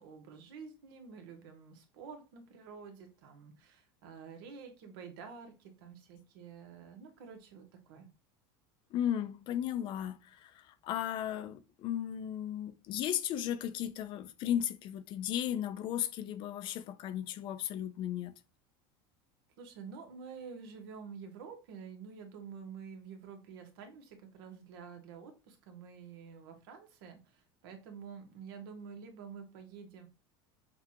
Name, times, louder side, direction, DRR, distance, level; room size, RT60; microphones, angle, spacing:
voice 1, 0.0-8.1 19.6-30.1, right 6 dB, 80° right, 1.2 m, -49 dB
voice 2, 8.9-18.3, left 10 dB, 45° left, 0.5 m, -35 dB
5.8 x 2.4 x 2.8 m
supercardioid pair, 140°, 12 cm